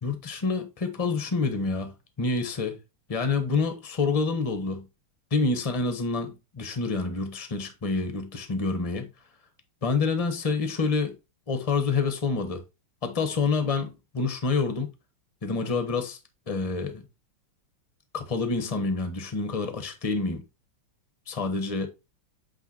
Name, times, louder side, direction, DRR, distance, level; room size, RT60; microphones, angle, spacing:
voice 1, 0.0-2.8 3.1-4.9 5.3-9.1 9.8-11.2 11.5-12.6 13.0-14.9 15.4-16.2 16.5-17.0 18.1-20.4 21.3-21.9, left 4 dB, 25° left, 0.7 m, -27 dB
8.3 x 3.5 x 4.1 m
omnidirectional pair, 2.4 m